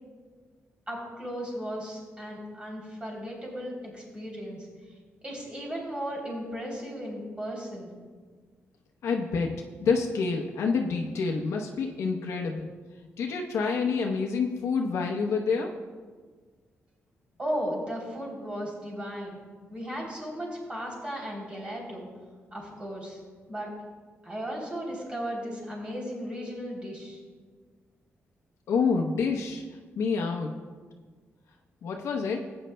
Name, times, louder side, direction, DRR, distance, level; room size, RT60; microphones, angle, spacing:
voice 1, 0.9-4.7 5.2-7.9 17.4-19.4 19.7-22.1 22.5-23.2 23.5-23.7 24.2-27.2, equal, 25° right, -3 dB, 3.2 m, -36 dB
voice 2, 9.0-12.7 13.2-15.7 28.7-29.6 30.0-30.5 31.8-32.4, left 5 dB, 90° left, 1 dB, 0.8 m, -28 dB
17.0 x 8.9 x 2.2 m, 1.5 s
wide cardioid pair, 135°, 5 cm